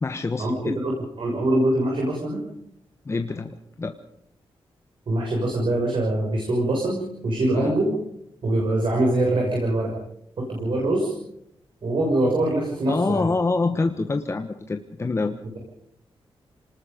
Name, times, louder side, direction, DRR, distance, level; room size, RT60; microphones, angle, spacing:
voice 1, 0.0-0.8 3.0-4.0 7.5-7.7 12.9-15.4, left 3 dB, 30° left, 6 dB, 1.3 m, -26 dB
voice 2, 0.8-2.4 5.1-7.9 8.4-10.0 10.4-11.1 11.8-13.2, right 1 dB, 55° right, -1 dB, 6.3 m, -23 dB
28.0 x 20.0 x 5.2 m, 0.75 s
wide cardioid pair, 140°, 10 cm